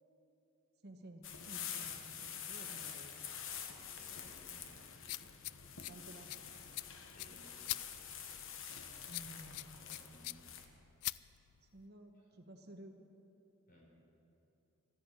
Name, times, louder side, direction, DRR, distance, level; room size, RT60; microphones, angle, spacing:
voice 1, 0.8-3.2 5.9-6.4 9.1-9.7 11.7-13.0, right 1 dB, 50° right, 4 dB, 1.1 m, -54 dB
sound 1, 1.2-10.7, left 8 dB, 65° left, 1.2 m, -47 dB
sound 2, 3.5-11.9, left 18 dB, 85° left, 0.3 m, -47 dB
voice 2, 4.0-4.7 7.1-7.5 9.8-10.5 13.7-13.8, equal, 40° left, -2 dB, 4.2 m, -60 dB
13.0 x 10.5 x 9.8 m, 2.9 s
head